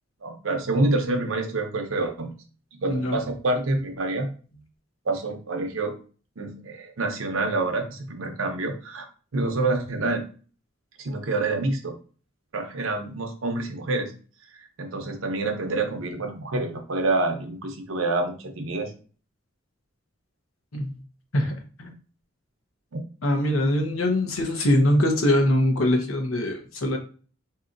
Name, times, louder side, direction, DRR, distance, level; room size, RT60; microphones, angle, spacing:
voice 1, 0.2-2.3 2.7-4.3 5.1-5.9 6.4-9.1 9.3-10.2 11.0-11.9 12.5-14.1 14.6-18.9, right 2 dB, 80° right, 5 dB, 0.7 m, -27 dB
voice 2, 2.9-3.2 20.7-21.0 21.3-21.9 23.2-27.0, left 1 dB, 90° left, 3 dB, 0.9 m, -23 dB
4.1 x 2.8 x 2.5 m, 0.39 s
head